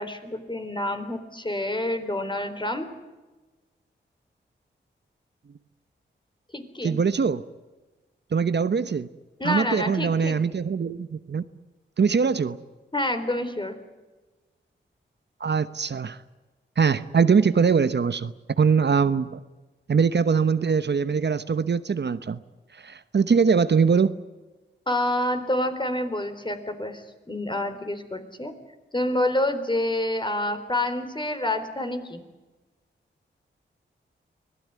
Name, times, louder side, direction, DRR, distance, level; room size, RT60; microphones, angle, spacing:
voice 1, 0.0-2.9 6.5-7.0 9.4-10.4 12.9-13.8 24.9-28.5 28.9-32.2, left 1 dB, 25° left, 7 dB, 4.0 m, -28 dB
voice 2, 6.8-7.4 8.3-9.1 9.4-11.4 12.0-12.6 15.4-16.2 16.8-19.4 19.9-22.4 22.7-24.1, right 6 dB, 60° right, 13 dB, 1.0 m, -22 dB
24.5 x 18.0 x 9.5 m, 1.2 s
cardioid pair, 55°, 20 cm